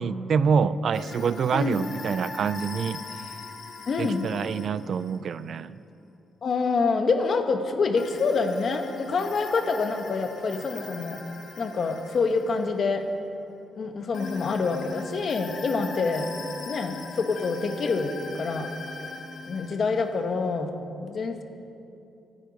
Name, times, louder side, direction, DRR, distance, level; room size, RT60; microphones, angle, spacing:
voice 1, 0.0-3.0 4.0-5.8, right 6 dB, 55° right, 16 dB, 0.4 m, -26 dB
sound 1, 0.9-5.2 8.0-13.1 14.1-20.6, left 3 dB, 70° left, 1.5 m, -41 dB
voice 2, 1.5-1.8 3.9-4.3 6.4-11.2 11.6-13.0 13.8-16.3 16.6-18.7 19.5-20.7 21.0-21.4, left 4 dB, 45° left, 6 dB, 1.3 m, -26 dB
24.5 x 9.1 x 5.3 m, 2.7 s
cardioid pair, 145°, 0 cm